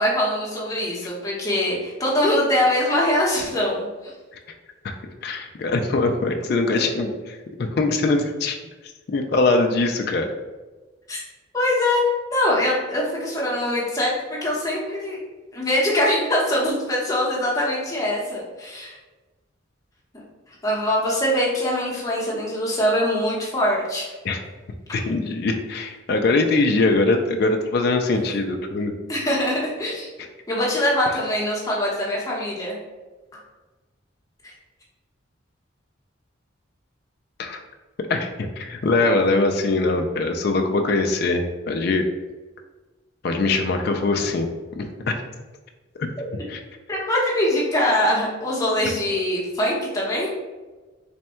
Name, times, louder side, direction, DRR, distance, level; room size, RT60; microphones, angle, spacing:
voice 1, 0.0-4.1 11.1-11.2 11.5-12.0 12.3-15.2 15.5-19.0 20.5-24.1 29.1-30.1 30.5-32.7 34.4-34.5 46.2-46.3 46.9-50.3, left 1 dB, 15° left, -5 dB, 0.8 m, -23 dB
voice 2, 5.2-8.6 9.1-10.3 24.3-24.4 24.9-28.9 37.4-37.6 38.1-42.0 43.2-45.2 46.0-46.1 46.5-46.6, left 3 dB, 50° left, 4 dB, 0.3 m, -22 dB
3.4 x 2.2 x 4.2 m, 1.2 s
head